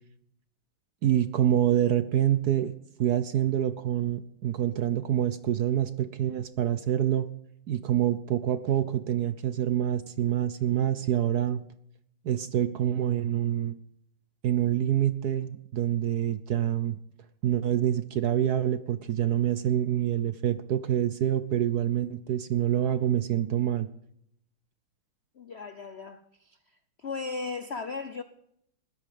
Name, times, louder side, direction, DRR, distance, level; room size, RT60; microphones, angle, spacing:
voice 1, 1.0-2.7 3.0-7.3 7.7-11.7 12.2-13.8 14.4-16.9 17.4-23.9, right 11 dB, 65° right, 1.0 m, -26 dB
voice 2, 25.4-26.6 27.0-28.2, left 4 dB, 90° left, 0.5 m, -36 dB
20.5 x 13.5 x 5.2 m
omnidirectional pair, 2.4 m